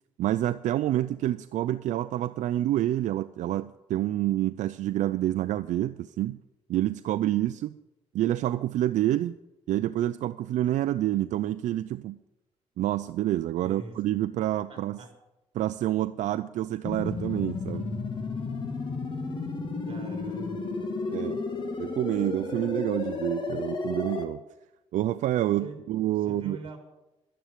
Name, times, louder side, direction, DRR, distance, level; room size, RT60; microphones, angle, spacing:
voice 1, 0.2-6.4 6.7-7.7 8.1-9.3 9.7-12.2 12.8-15.0 15.5-17.9 21.1-21.4 21.8-24.4 24.9-26.6, right 13 dB, 80° right, 12 dB, 0.5 m, -28 dB
voice 2, 13.6-14.0 14.7-15.1 19.9-20.8 25.6-25.8 26.1-26.8, right 3 dB, 45° right, 3 dB, 4.1 m, -43 dB
sound 1, 16.8-24.2, left 3 dB, 40° left, 2.2 m, -32 dB
12.0 x 10.0 x 7.4 m, 0.96 s
cardioid pair, 125°, 12 cm